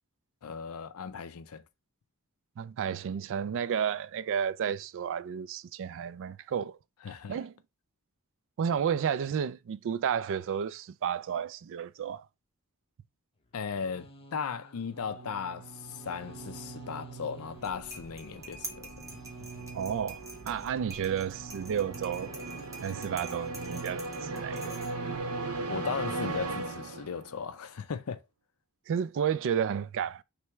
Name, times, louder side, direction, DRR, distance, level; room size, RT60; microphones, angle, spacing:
voice 1, 0.4-1.6 7.0-7.4 13.5-18.9 25.7-28.2, left 6 dB, 70° left, 0.5 m, -37 dB
voice 2, 2.6-6.8 7.3-7.6 8.6-12.3 19.7-22.3 22.8-24.8 28.9-30.2, right 8 dB, 60° right, 0.3 m, -32 dB
sound 1, 13.4-26.5, left 1 dB, 25° left, 0.7 m, -54 dB
sound 2, 14.8-27.5, right 3 dB, 75° right, 0.9 m, -39 dB
sound 3, 17.5-25.2, right 2 dB, 15° right, 1.0 m, -47 dB
3.4 x 3.1 x 4.4 m
head